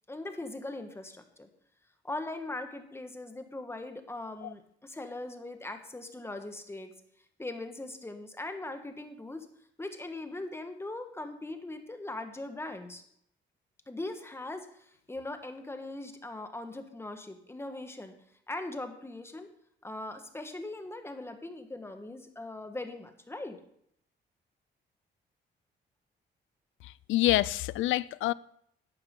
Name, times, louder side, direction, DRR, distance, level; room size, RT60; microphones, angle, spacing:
voice 1, 0.1-1.5 2.0-6.9 7.4-9.5 9.8-13.0 13.9-18.1 18.5-19.5 19.8-23.6, left 2 dB, 10° left, 1.4 m, -40 dB
voice 2, 26.8-28.3, left 16 dB, 80° left, 0.4 m, -27 dB
11.5 x 8.8 x 3.8 m
cardioid pair, 90°, 20 cm